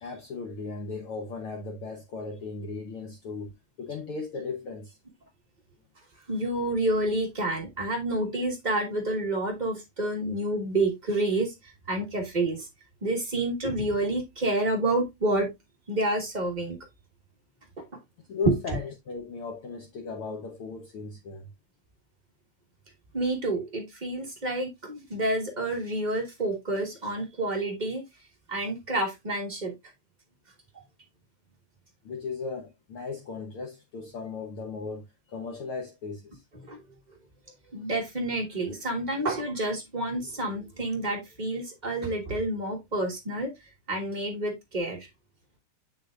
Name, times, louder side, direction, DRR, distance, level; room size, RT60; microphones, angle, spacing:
voice 1, 0.0-3.5 3.8-5.0 18.3-21.5 32.0-36.4 40.4-40.5, left 4 dB, 60° left, 1.6 m, -36 dB
voice 2, 6.3-11.5 11.9-12.7 13.0-15.5 15.9-16.8 23.1-28.0 28.5-29.7 36.6-36.8 37.7-43.5 43.9-45.1, right 1 dB, 70° right, 0.4 m, -29 dB
7.1 x 6.9 x 2.4 m
omnidirectional pair, 3.3 m